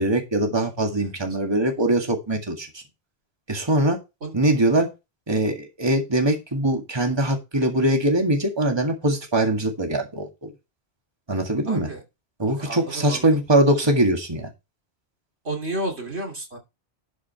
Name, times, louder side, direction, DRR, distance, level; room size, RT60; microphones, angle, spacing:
voice 1, 0.0-2.7 3.5-4.0 4.3-4.9 5.3-10.5 11.3-11.9 12.4-14.5, right 1 dB, 25° right, 3 dB, 1.9 m, -22 dB
voice 2, 11.7-12.0 12.6-13.3 15.4-16.6, right 1 dB, 85° right, 2 dB, 3.1 m, -31 dB
12.0 x 5.0 x 4.6 m, 0.26 s
omnidirectional pair, 1.1 m